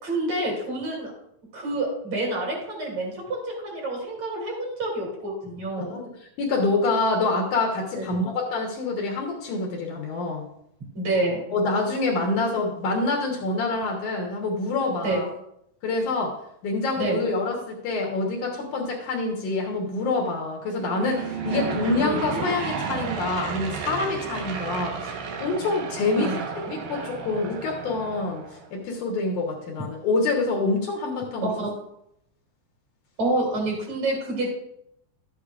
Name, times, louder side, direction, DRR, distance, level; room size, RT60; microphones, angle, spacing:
voice 1, 0.0-1.1 1.5-6.0 8.0-8.2 11.0-11.4 15.0-15.2 17.0-17.3 21.5-22.4 26.2-26.4 31.4-31.7 33.2-34.5, right 2 dB, 50° right, -3 dB, 3.7 m, -28 dB
voice 2, 6.4-10.5 11.5-15.3 15.8-16.3 16.6-25.1 25.4-26.3 26.6-28.4 28.7-31.5, left 3 dB, 65° left, 0 dB, 2.5 m, -26 dB
Aircraft / Engine, 20.7-28.7, right 6 dB, 80° right, 2.8 m, -33 dB
12.5 x 8.4 x 2.4 m, 0.76 s
omnidirectional pair, 4.1 m